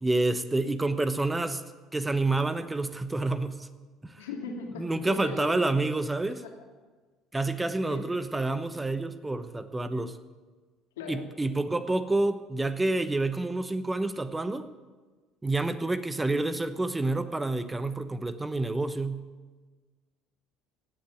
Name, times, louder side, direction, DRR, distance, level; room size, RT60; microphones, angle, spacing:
voice 1, 0.0-1.6 1.9-3.7 4.0-4.2 4.7-6.4 7.3-10.2 11.1-14.7 15.4-19.3, right 2 dB, 15° right, 12 dB, 1.0 m, -28 dB
voice 2, 4.2-5.9 6.4-6.5 7.9-8.3 11.0-11.3, left 4 dB, 75° left, 1 dB, 2.4 m, -39 dB
17.0 x 8.4 x 9.1 m, 1.4 s
hypercardioid pair, 60°, 0 cm